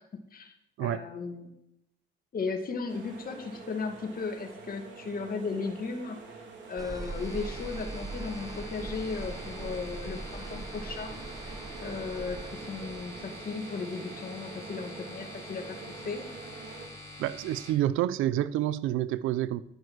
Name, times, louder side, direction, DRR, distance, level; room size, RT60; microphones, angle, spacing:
voice 1, 0.8-1.5 2.3-6.2 6.7-11.2 11.8-16.3, left 4 dB, 45° left, 4 dB, 2.1 m, -36 dB
sound 1, 2.9-16.9, right 4 dB, 70° right, 3.5 m, -46 dB
sound 2, 6.8-13.5, right 3 dB, 20° right, 1.0 m, -41 dB
sound 3, 7.0-17.7, left 2 dB, 15° left, 3.9 m, -46 dB
voice 2, 17.2-19.6, right 13 dB, 90° right, 16 dB, 0.6 m, -28 dB
10.5 x 9.4 x 6.4 m, 0.81 s
cardioid pair, 90°, 20 cm